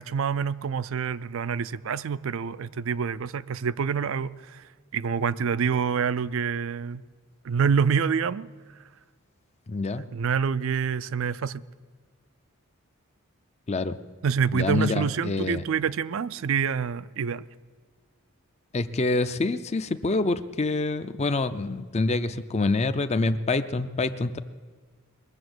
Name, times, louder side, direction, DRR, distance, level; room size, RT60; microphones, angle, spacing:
voice 1, 0.0-4.6 4.9-7.0 7.4-8.5 10.1-11.6 14.2-17.4, right 6 dB, 60° right, 17 dB, 0.4 m, -27 dB
voice 2, 9.7-10.1 13.7-14.0 14.5-15.6 18.7-24.4, left 3 dB, 30° left, 11 dB, 0.5 m, -26 dB
21.0 x 7.0 x 7.9 m, 1.5 s
head